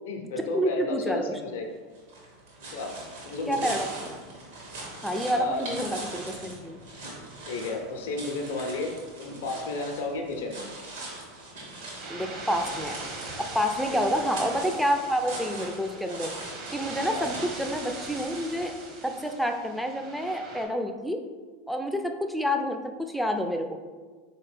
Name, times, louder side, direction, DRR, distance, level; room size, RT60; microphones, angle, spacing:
voice 1, 0.0-1.8 2.7-3.0 3.2-3.7 5.3-5.8 7.5-8.9 9.2-10.7 13.9-14.0 17.1-17.3, left 2 dB, 65° left, 2 dB, 0.6 m, -33 dB
voice 2, 0.5-1.2 3.5-4.2 5.0-6.8 12.1-13.0 13.5-16.3 16.7-18.7 19.0-21.2 21.7-23.8, equal, ahead, 4 dB, 0.4 m, -28 dB
sound 1, 1.9-19.1, right 2 dB, 75° right, 1.3 m, -41 dB
sound 2, 12.0-20.6, right 3 dB, 50° right, 0.9 m, -41 dB
4.1 x 2.9 x 3.2 m, 1.4 s
figure-of-eight pair, 85°, 0 cm